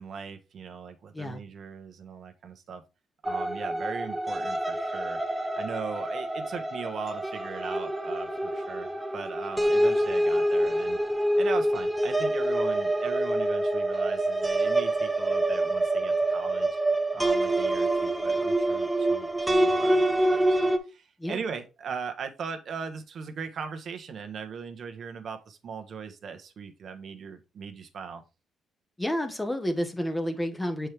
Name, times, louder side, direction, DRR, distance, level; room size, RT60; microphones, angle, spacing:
voice 1, 0.0-2.8 3.2-5.2 5.5-11.0 11.4-16.7 17.1-28.2, right 6 dB, 55° right, 1.1 m, -39 dB
sound 1, 3.3-20.8, right 1 dB, 10° right, 0.9 m, -26 dB
voice 2, 29.0-30.9, equal, 10° left, 1.1 m, -30 dB
6.3 x 4.6 x 3.4 m
cardioid pair, 90°, 0 cm